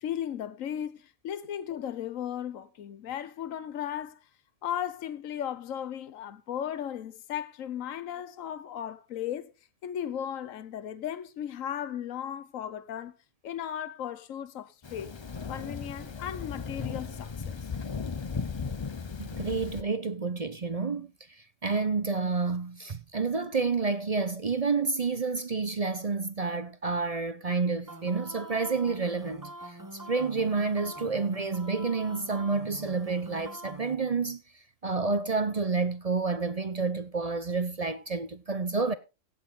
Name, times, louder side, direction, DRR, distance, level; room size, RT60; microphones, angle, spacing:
voice 1, 0.0-4.2 4.6-9.5 9.8-13.1 13.4-15.2 15.5-17.6, left 10 dB, 70° left, 1.3 m, -36 dB
Thunder, 14.8-19.8, left 5 dB, 30° left, 0.5 m, -36 dB
voice 2, 19.2-34.4 34.8-38.9, right 4 dB, 40° right, 0.6 m, -29 dB
sound 1, 27.9-34.0, right 1 dB, 15° right, 0.9 m, -44 dB
16.0 x 7.6 x 4.1 m
omnidirectional pair, 1.5 m